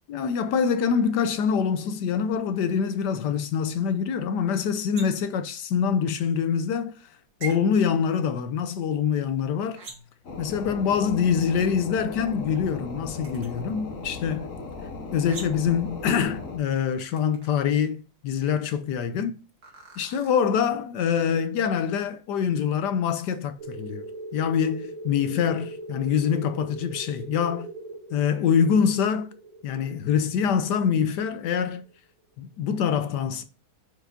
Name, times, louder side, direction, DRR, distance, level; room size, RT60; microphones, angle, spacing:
voice 1, 0.1-7.1 7.4-9.8 10.4-14.5 15.1-19.4 20.0-24.0 24.3-27.7 28.1-29.3 29.6-31.8 32.4-33.4, left 7 dB, 70° left, 1.1 m, -25 dB
sound 1, 4.9-5.3 7.4-7.6 9.7-10.2 13.2-13.5 15.3-15.7 17.0-17.5 19.6-20.3, right 5 dB, 50° right, 2.0 m, -40 dB
sound 2, 10.2-16.6, left 3 dB, 45° left, 1.3 m, -37 dB
sound 3, 23.6-31.9, right 2 dB, 75° right, 2.2 m, -41 dB
7.9 x 4.7 x 2.6 m
omnidirectional pair, 2.2 m